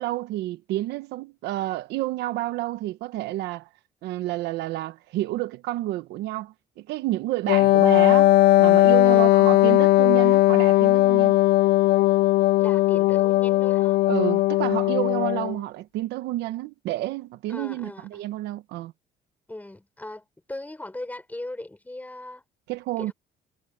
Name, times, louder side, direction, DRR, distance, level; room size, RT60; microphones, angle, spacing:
voice 1, 0.0-3.7 4.0-11.4 14.1-18.9 22.7-23.1, right 16 dB, 85° right, 1.2 m, -30 dB
Wind instrument woodwind instrument, 7.5-15.6, left 16 dB, 70° left, 0.5 m, -18 dB
voice 2, 9.0-9.5 12.6-14.0 17.5-18.3 19.5-22.4 23.0-23.1, left 1 dB, 10° left, 6.5 m, -39 dB
cardioid pair, 110°, 17 cm